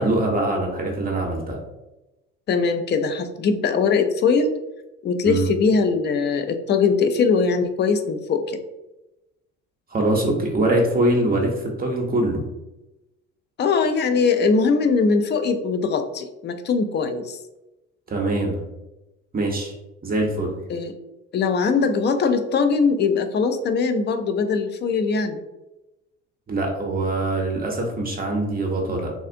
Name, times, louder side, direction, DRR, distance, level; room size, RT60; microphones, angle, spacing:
voice 1, 0.0-1.6 5.2-5.5 9.9-12.4 18.1-18.6 19.3-19.7 20.0-20.6 26.5-29.1, right 2 dB, 25° right, 0 dB, 0.8 m, -23 dB
voice 2, 2.5-4.6 5.0-8.6 13.6-17.4 20.7-20.9 21.3-25.4, left 5 dB, 30° left, 8 dB, 0.4 m, -21 dB
3.6 x 2.4 x 2.5 m, 0.97 s
hypercardioid pair, 60°, 36 cm